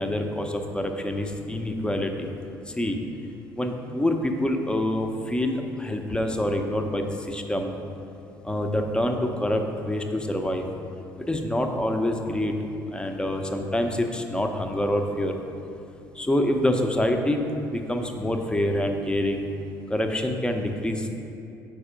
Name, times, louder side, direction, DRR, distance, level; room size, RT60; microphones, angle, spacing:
voice 1, 0.0-2.3 2.7-3.0 3.6-7.7 8.4-10.6 11.3-12.5 12.9-15.3 16.2-19.5 19.9-21.1, left 1 dB, 10° left, 4 dB, 0.5 m, -26 dB
4.7 x 4.3 x 5.0 m, 2.8 s
figure-of-eight pair, 50°, 10 cm